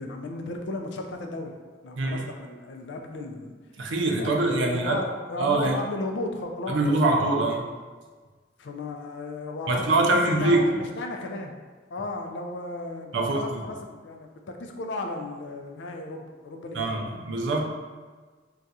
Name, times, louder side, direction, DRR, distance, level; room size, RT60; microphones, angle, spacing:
voice 1, 0.0-1.6 1.8-3.5 4.1-7.2 8.6-11.5 11.9-17.0, left 2 dB, 75° left, 3 dB, 0.4 m, -35 dB
voice 2, 3.8-5.0 5.4-5.8 6.7-7.7 9.7-10.6 13.1-13.4 16.7-17.6, right 2 dB, 80° right, 1 dB, 0.5 m, -23 dB
2.4 x 2.3 x 4.0 m, 1.4 s
head